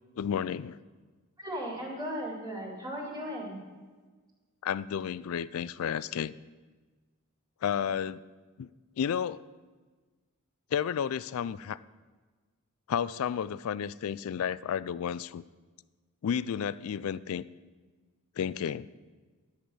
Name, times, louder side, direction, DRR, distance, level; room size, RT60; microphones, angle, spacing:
voice 1, 0.2-0.8 4.6-6.3 7.6-8.2 8.6-8.7 9.0-9.5 10.7-11.8 12.9-15.4 16.2-17.5 18.4-18.9, left 8 dB, 65° left, 18 dB, 0.3 m, -32 dB
voice 2, 1.4-3.6, equal, 15° right, -2 dB, 2.5 m, -36 dB
10.5 x 8.3 x 6.3 m, 1.4 s
head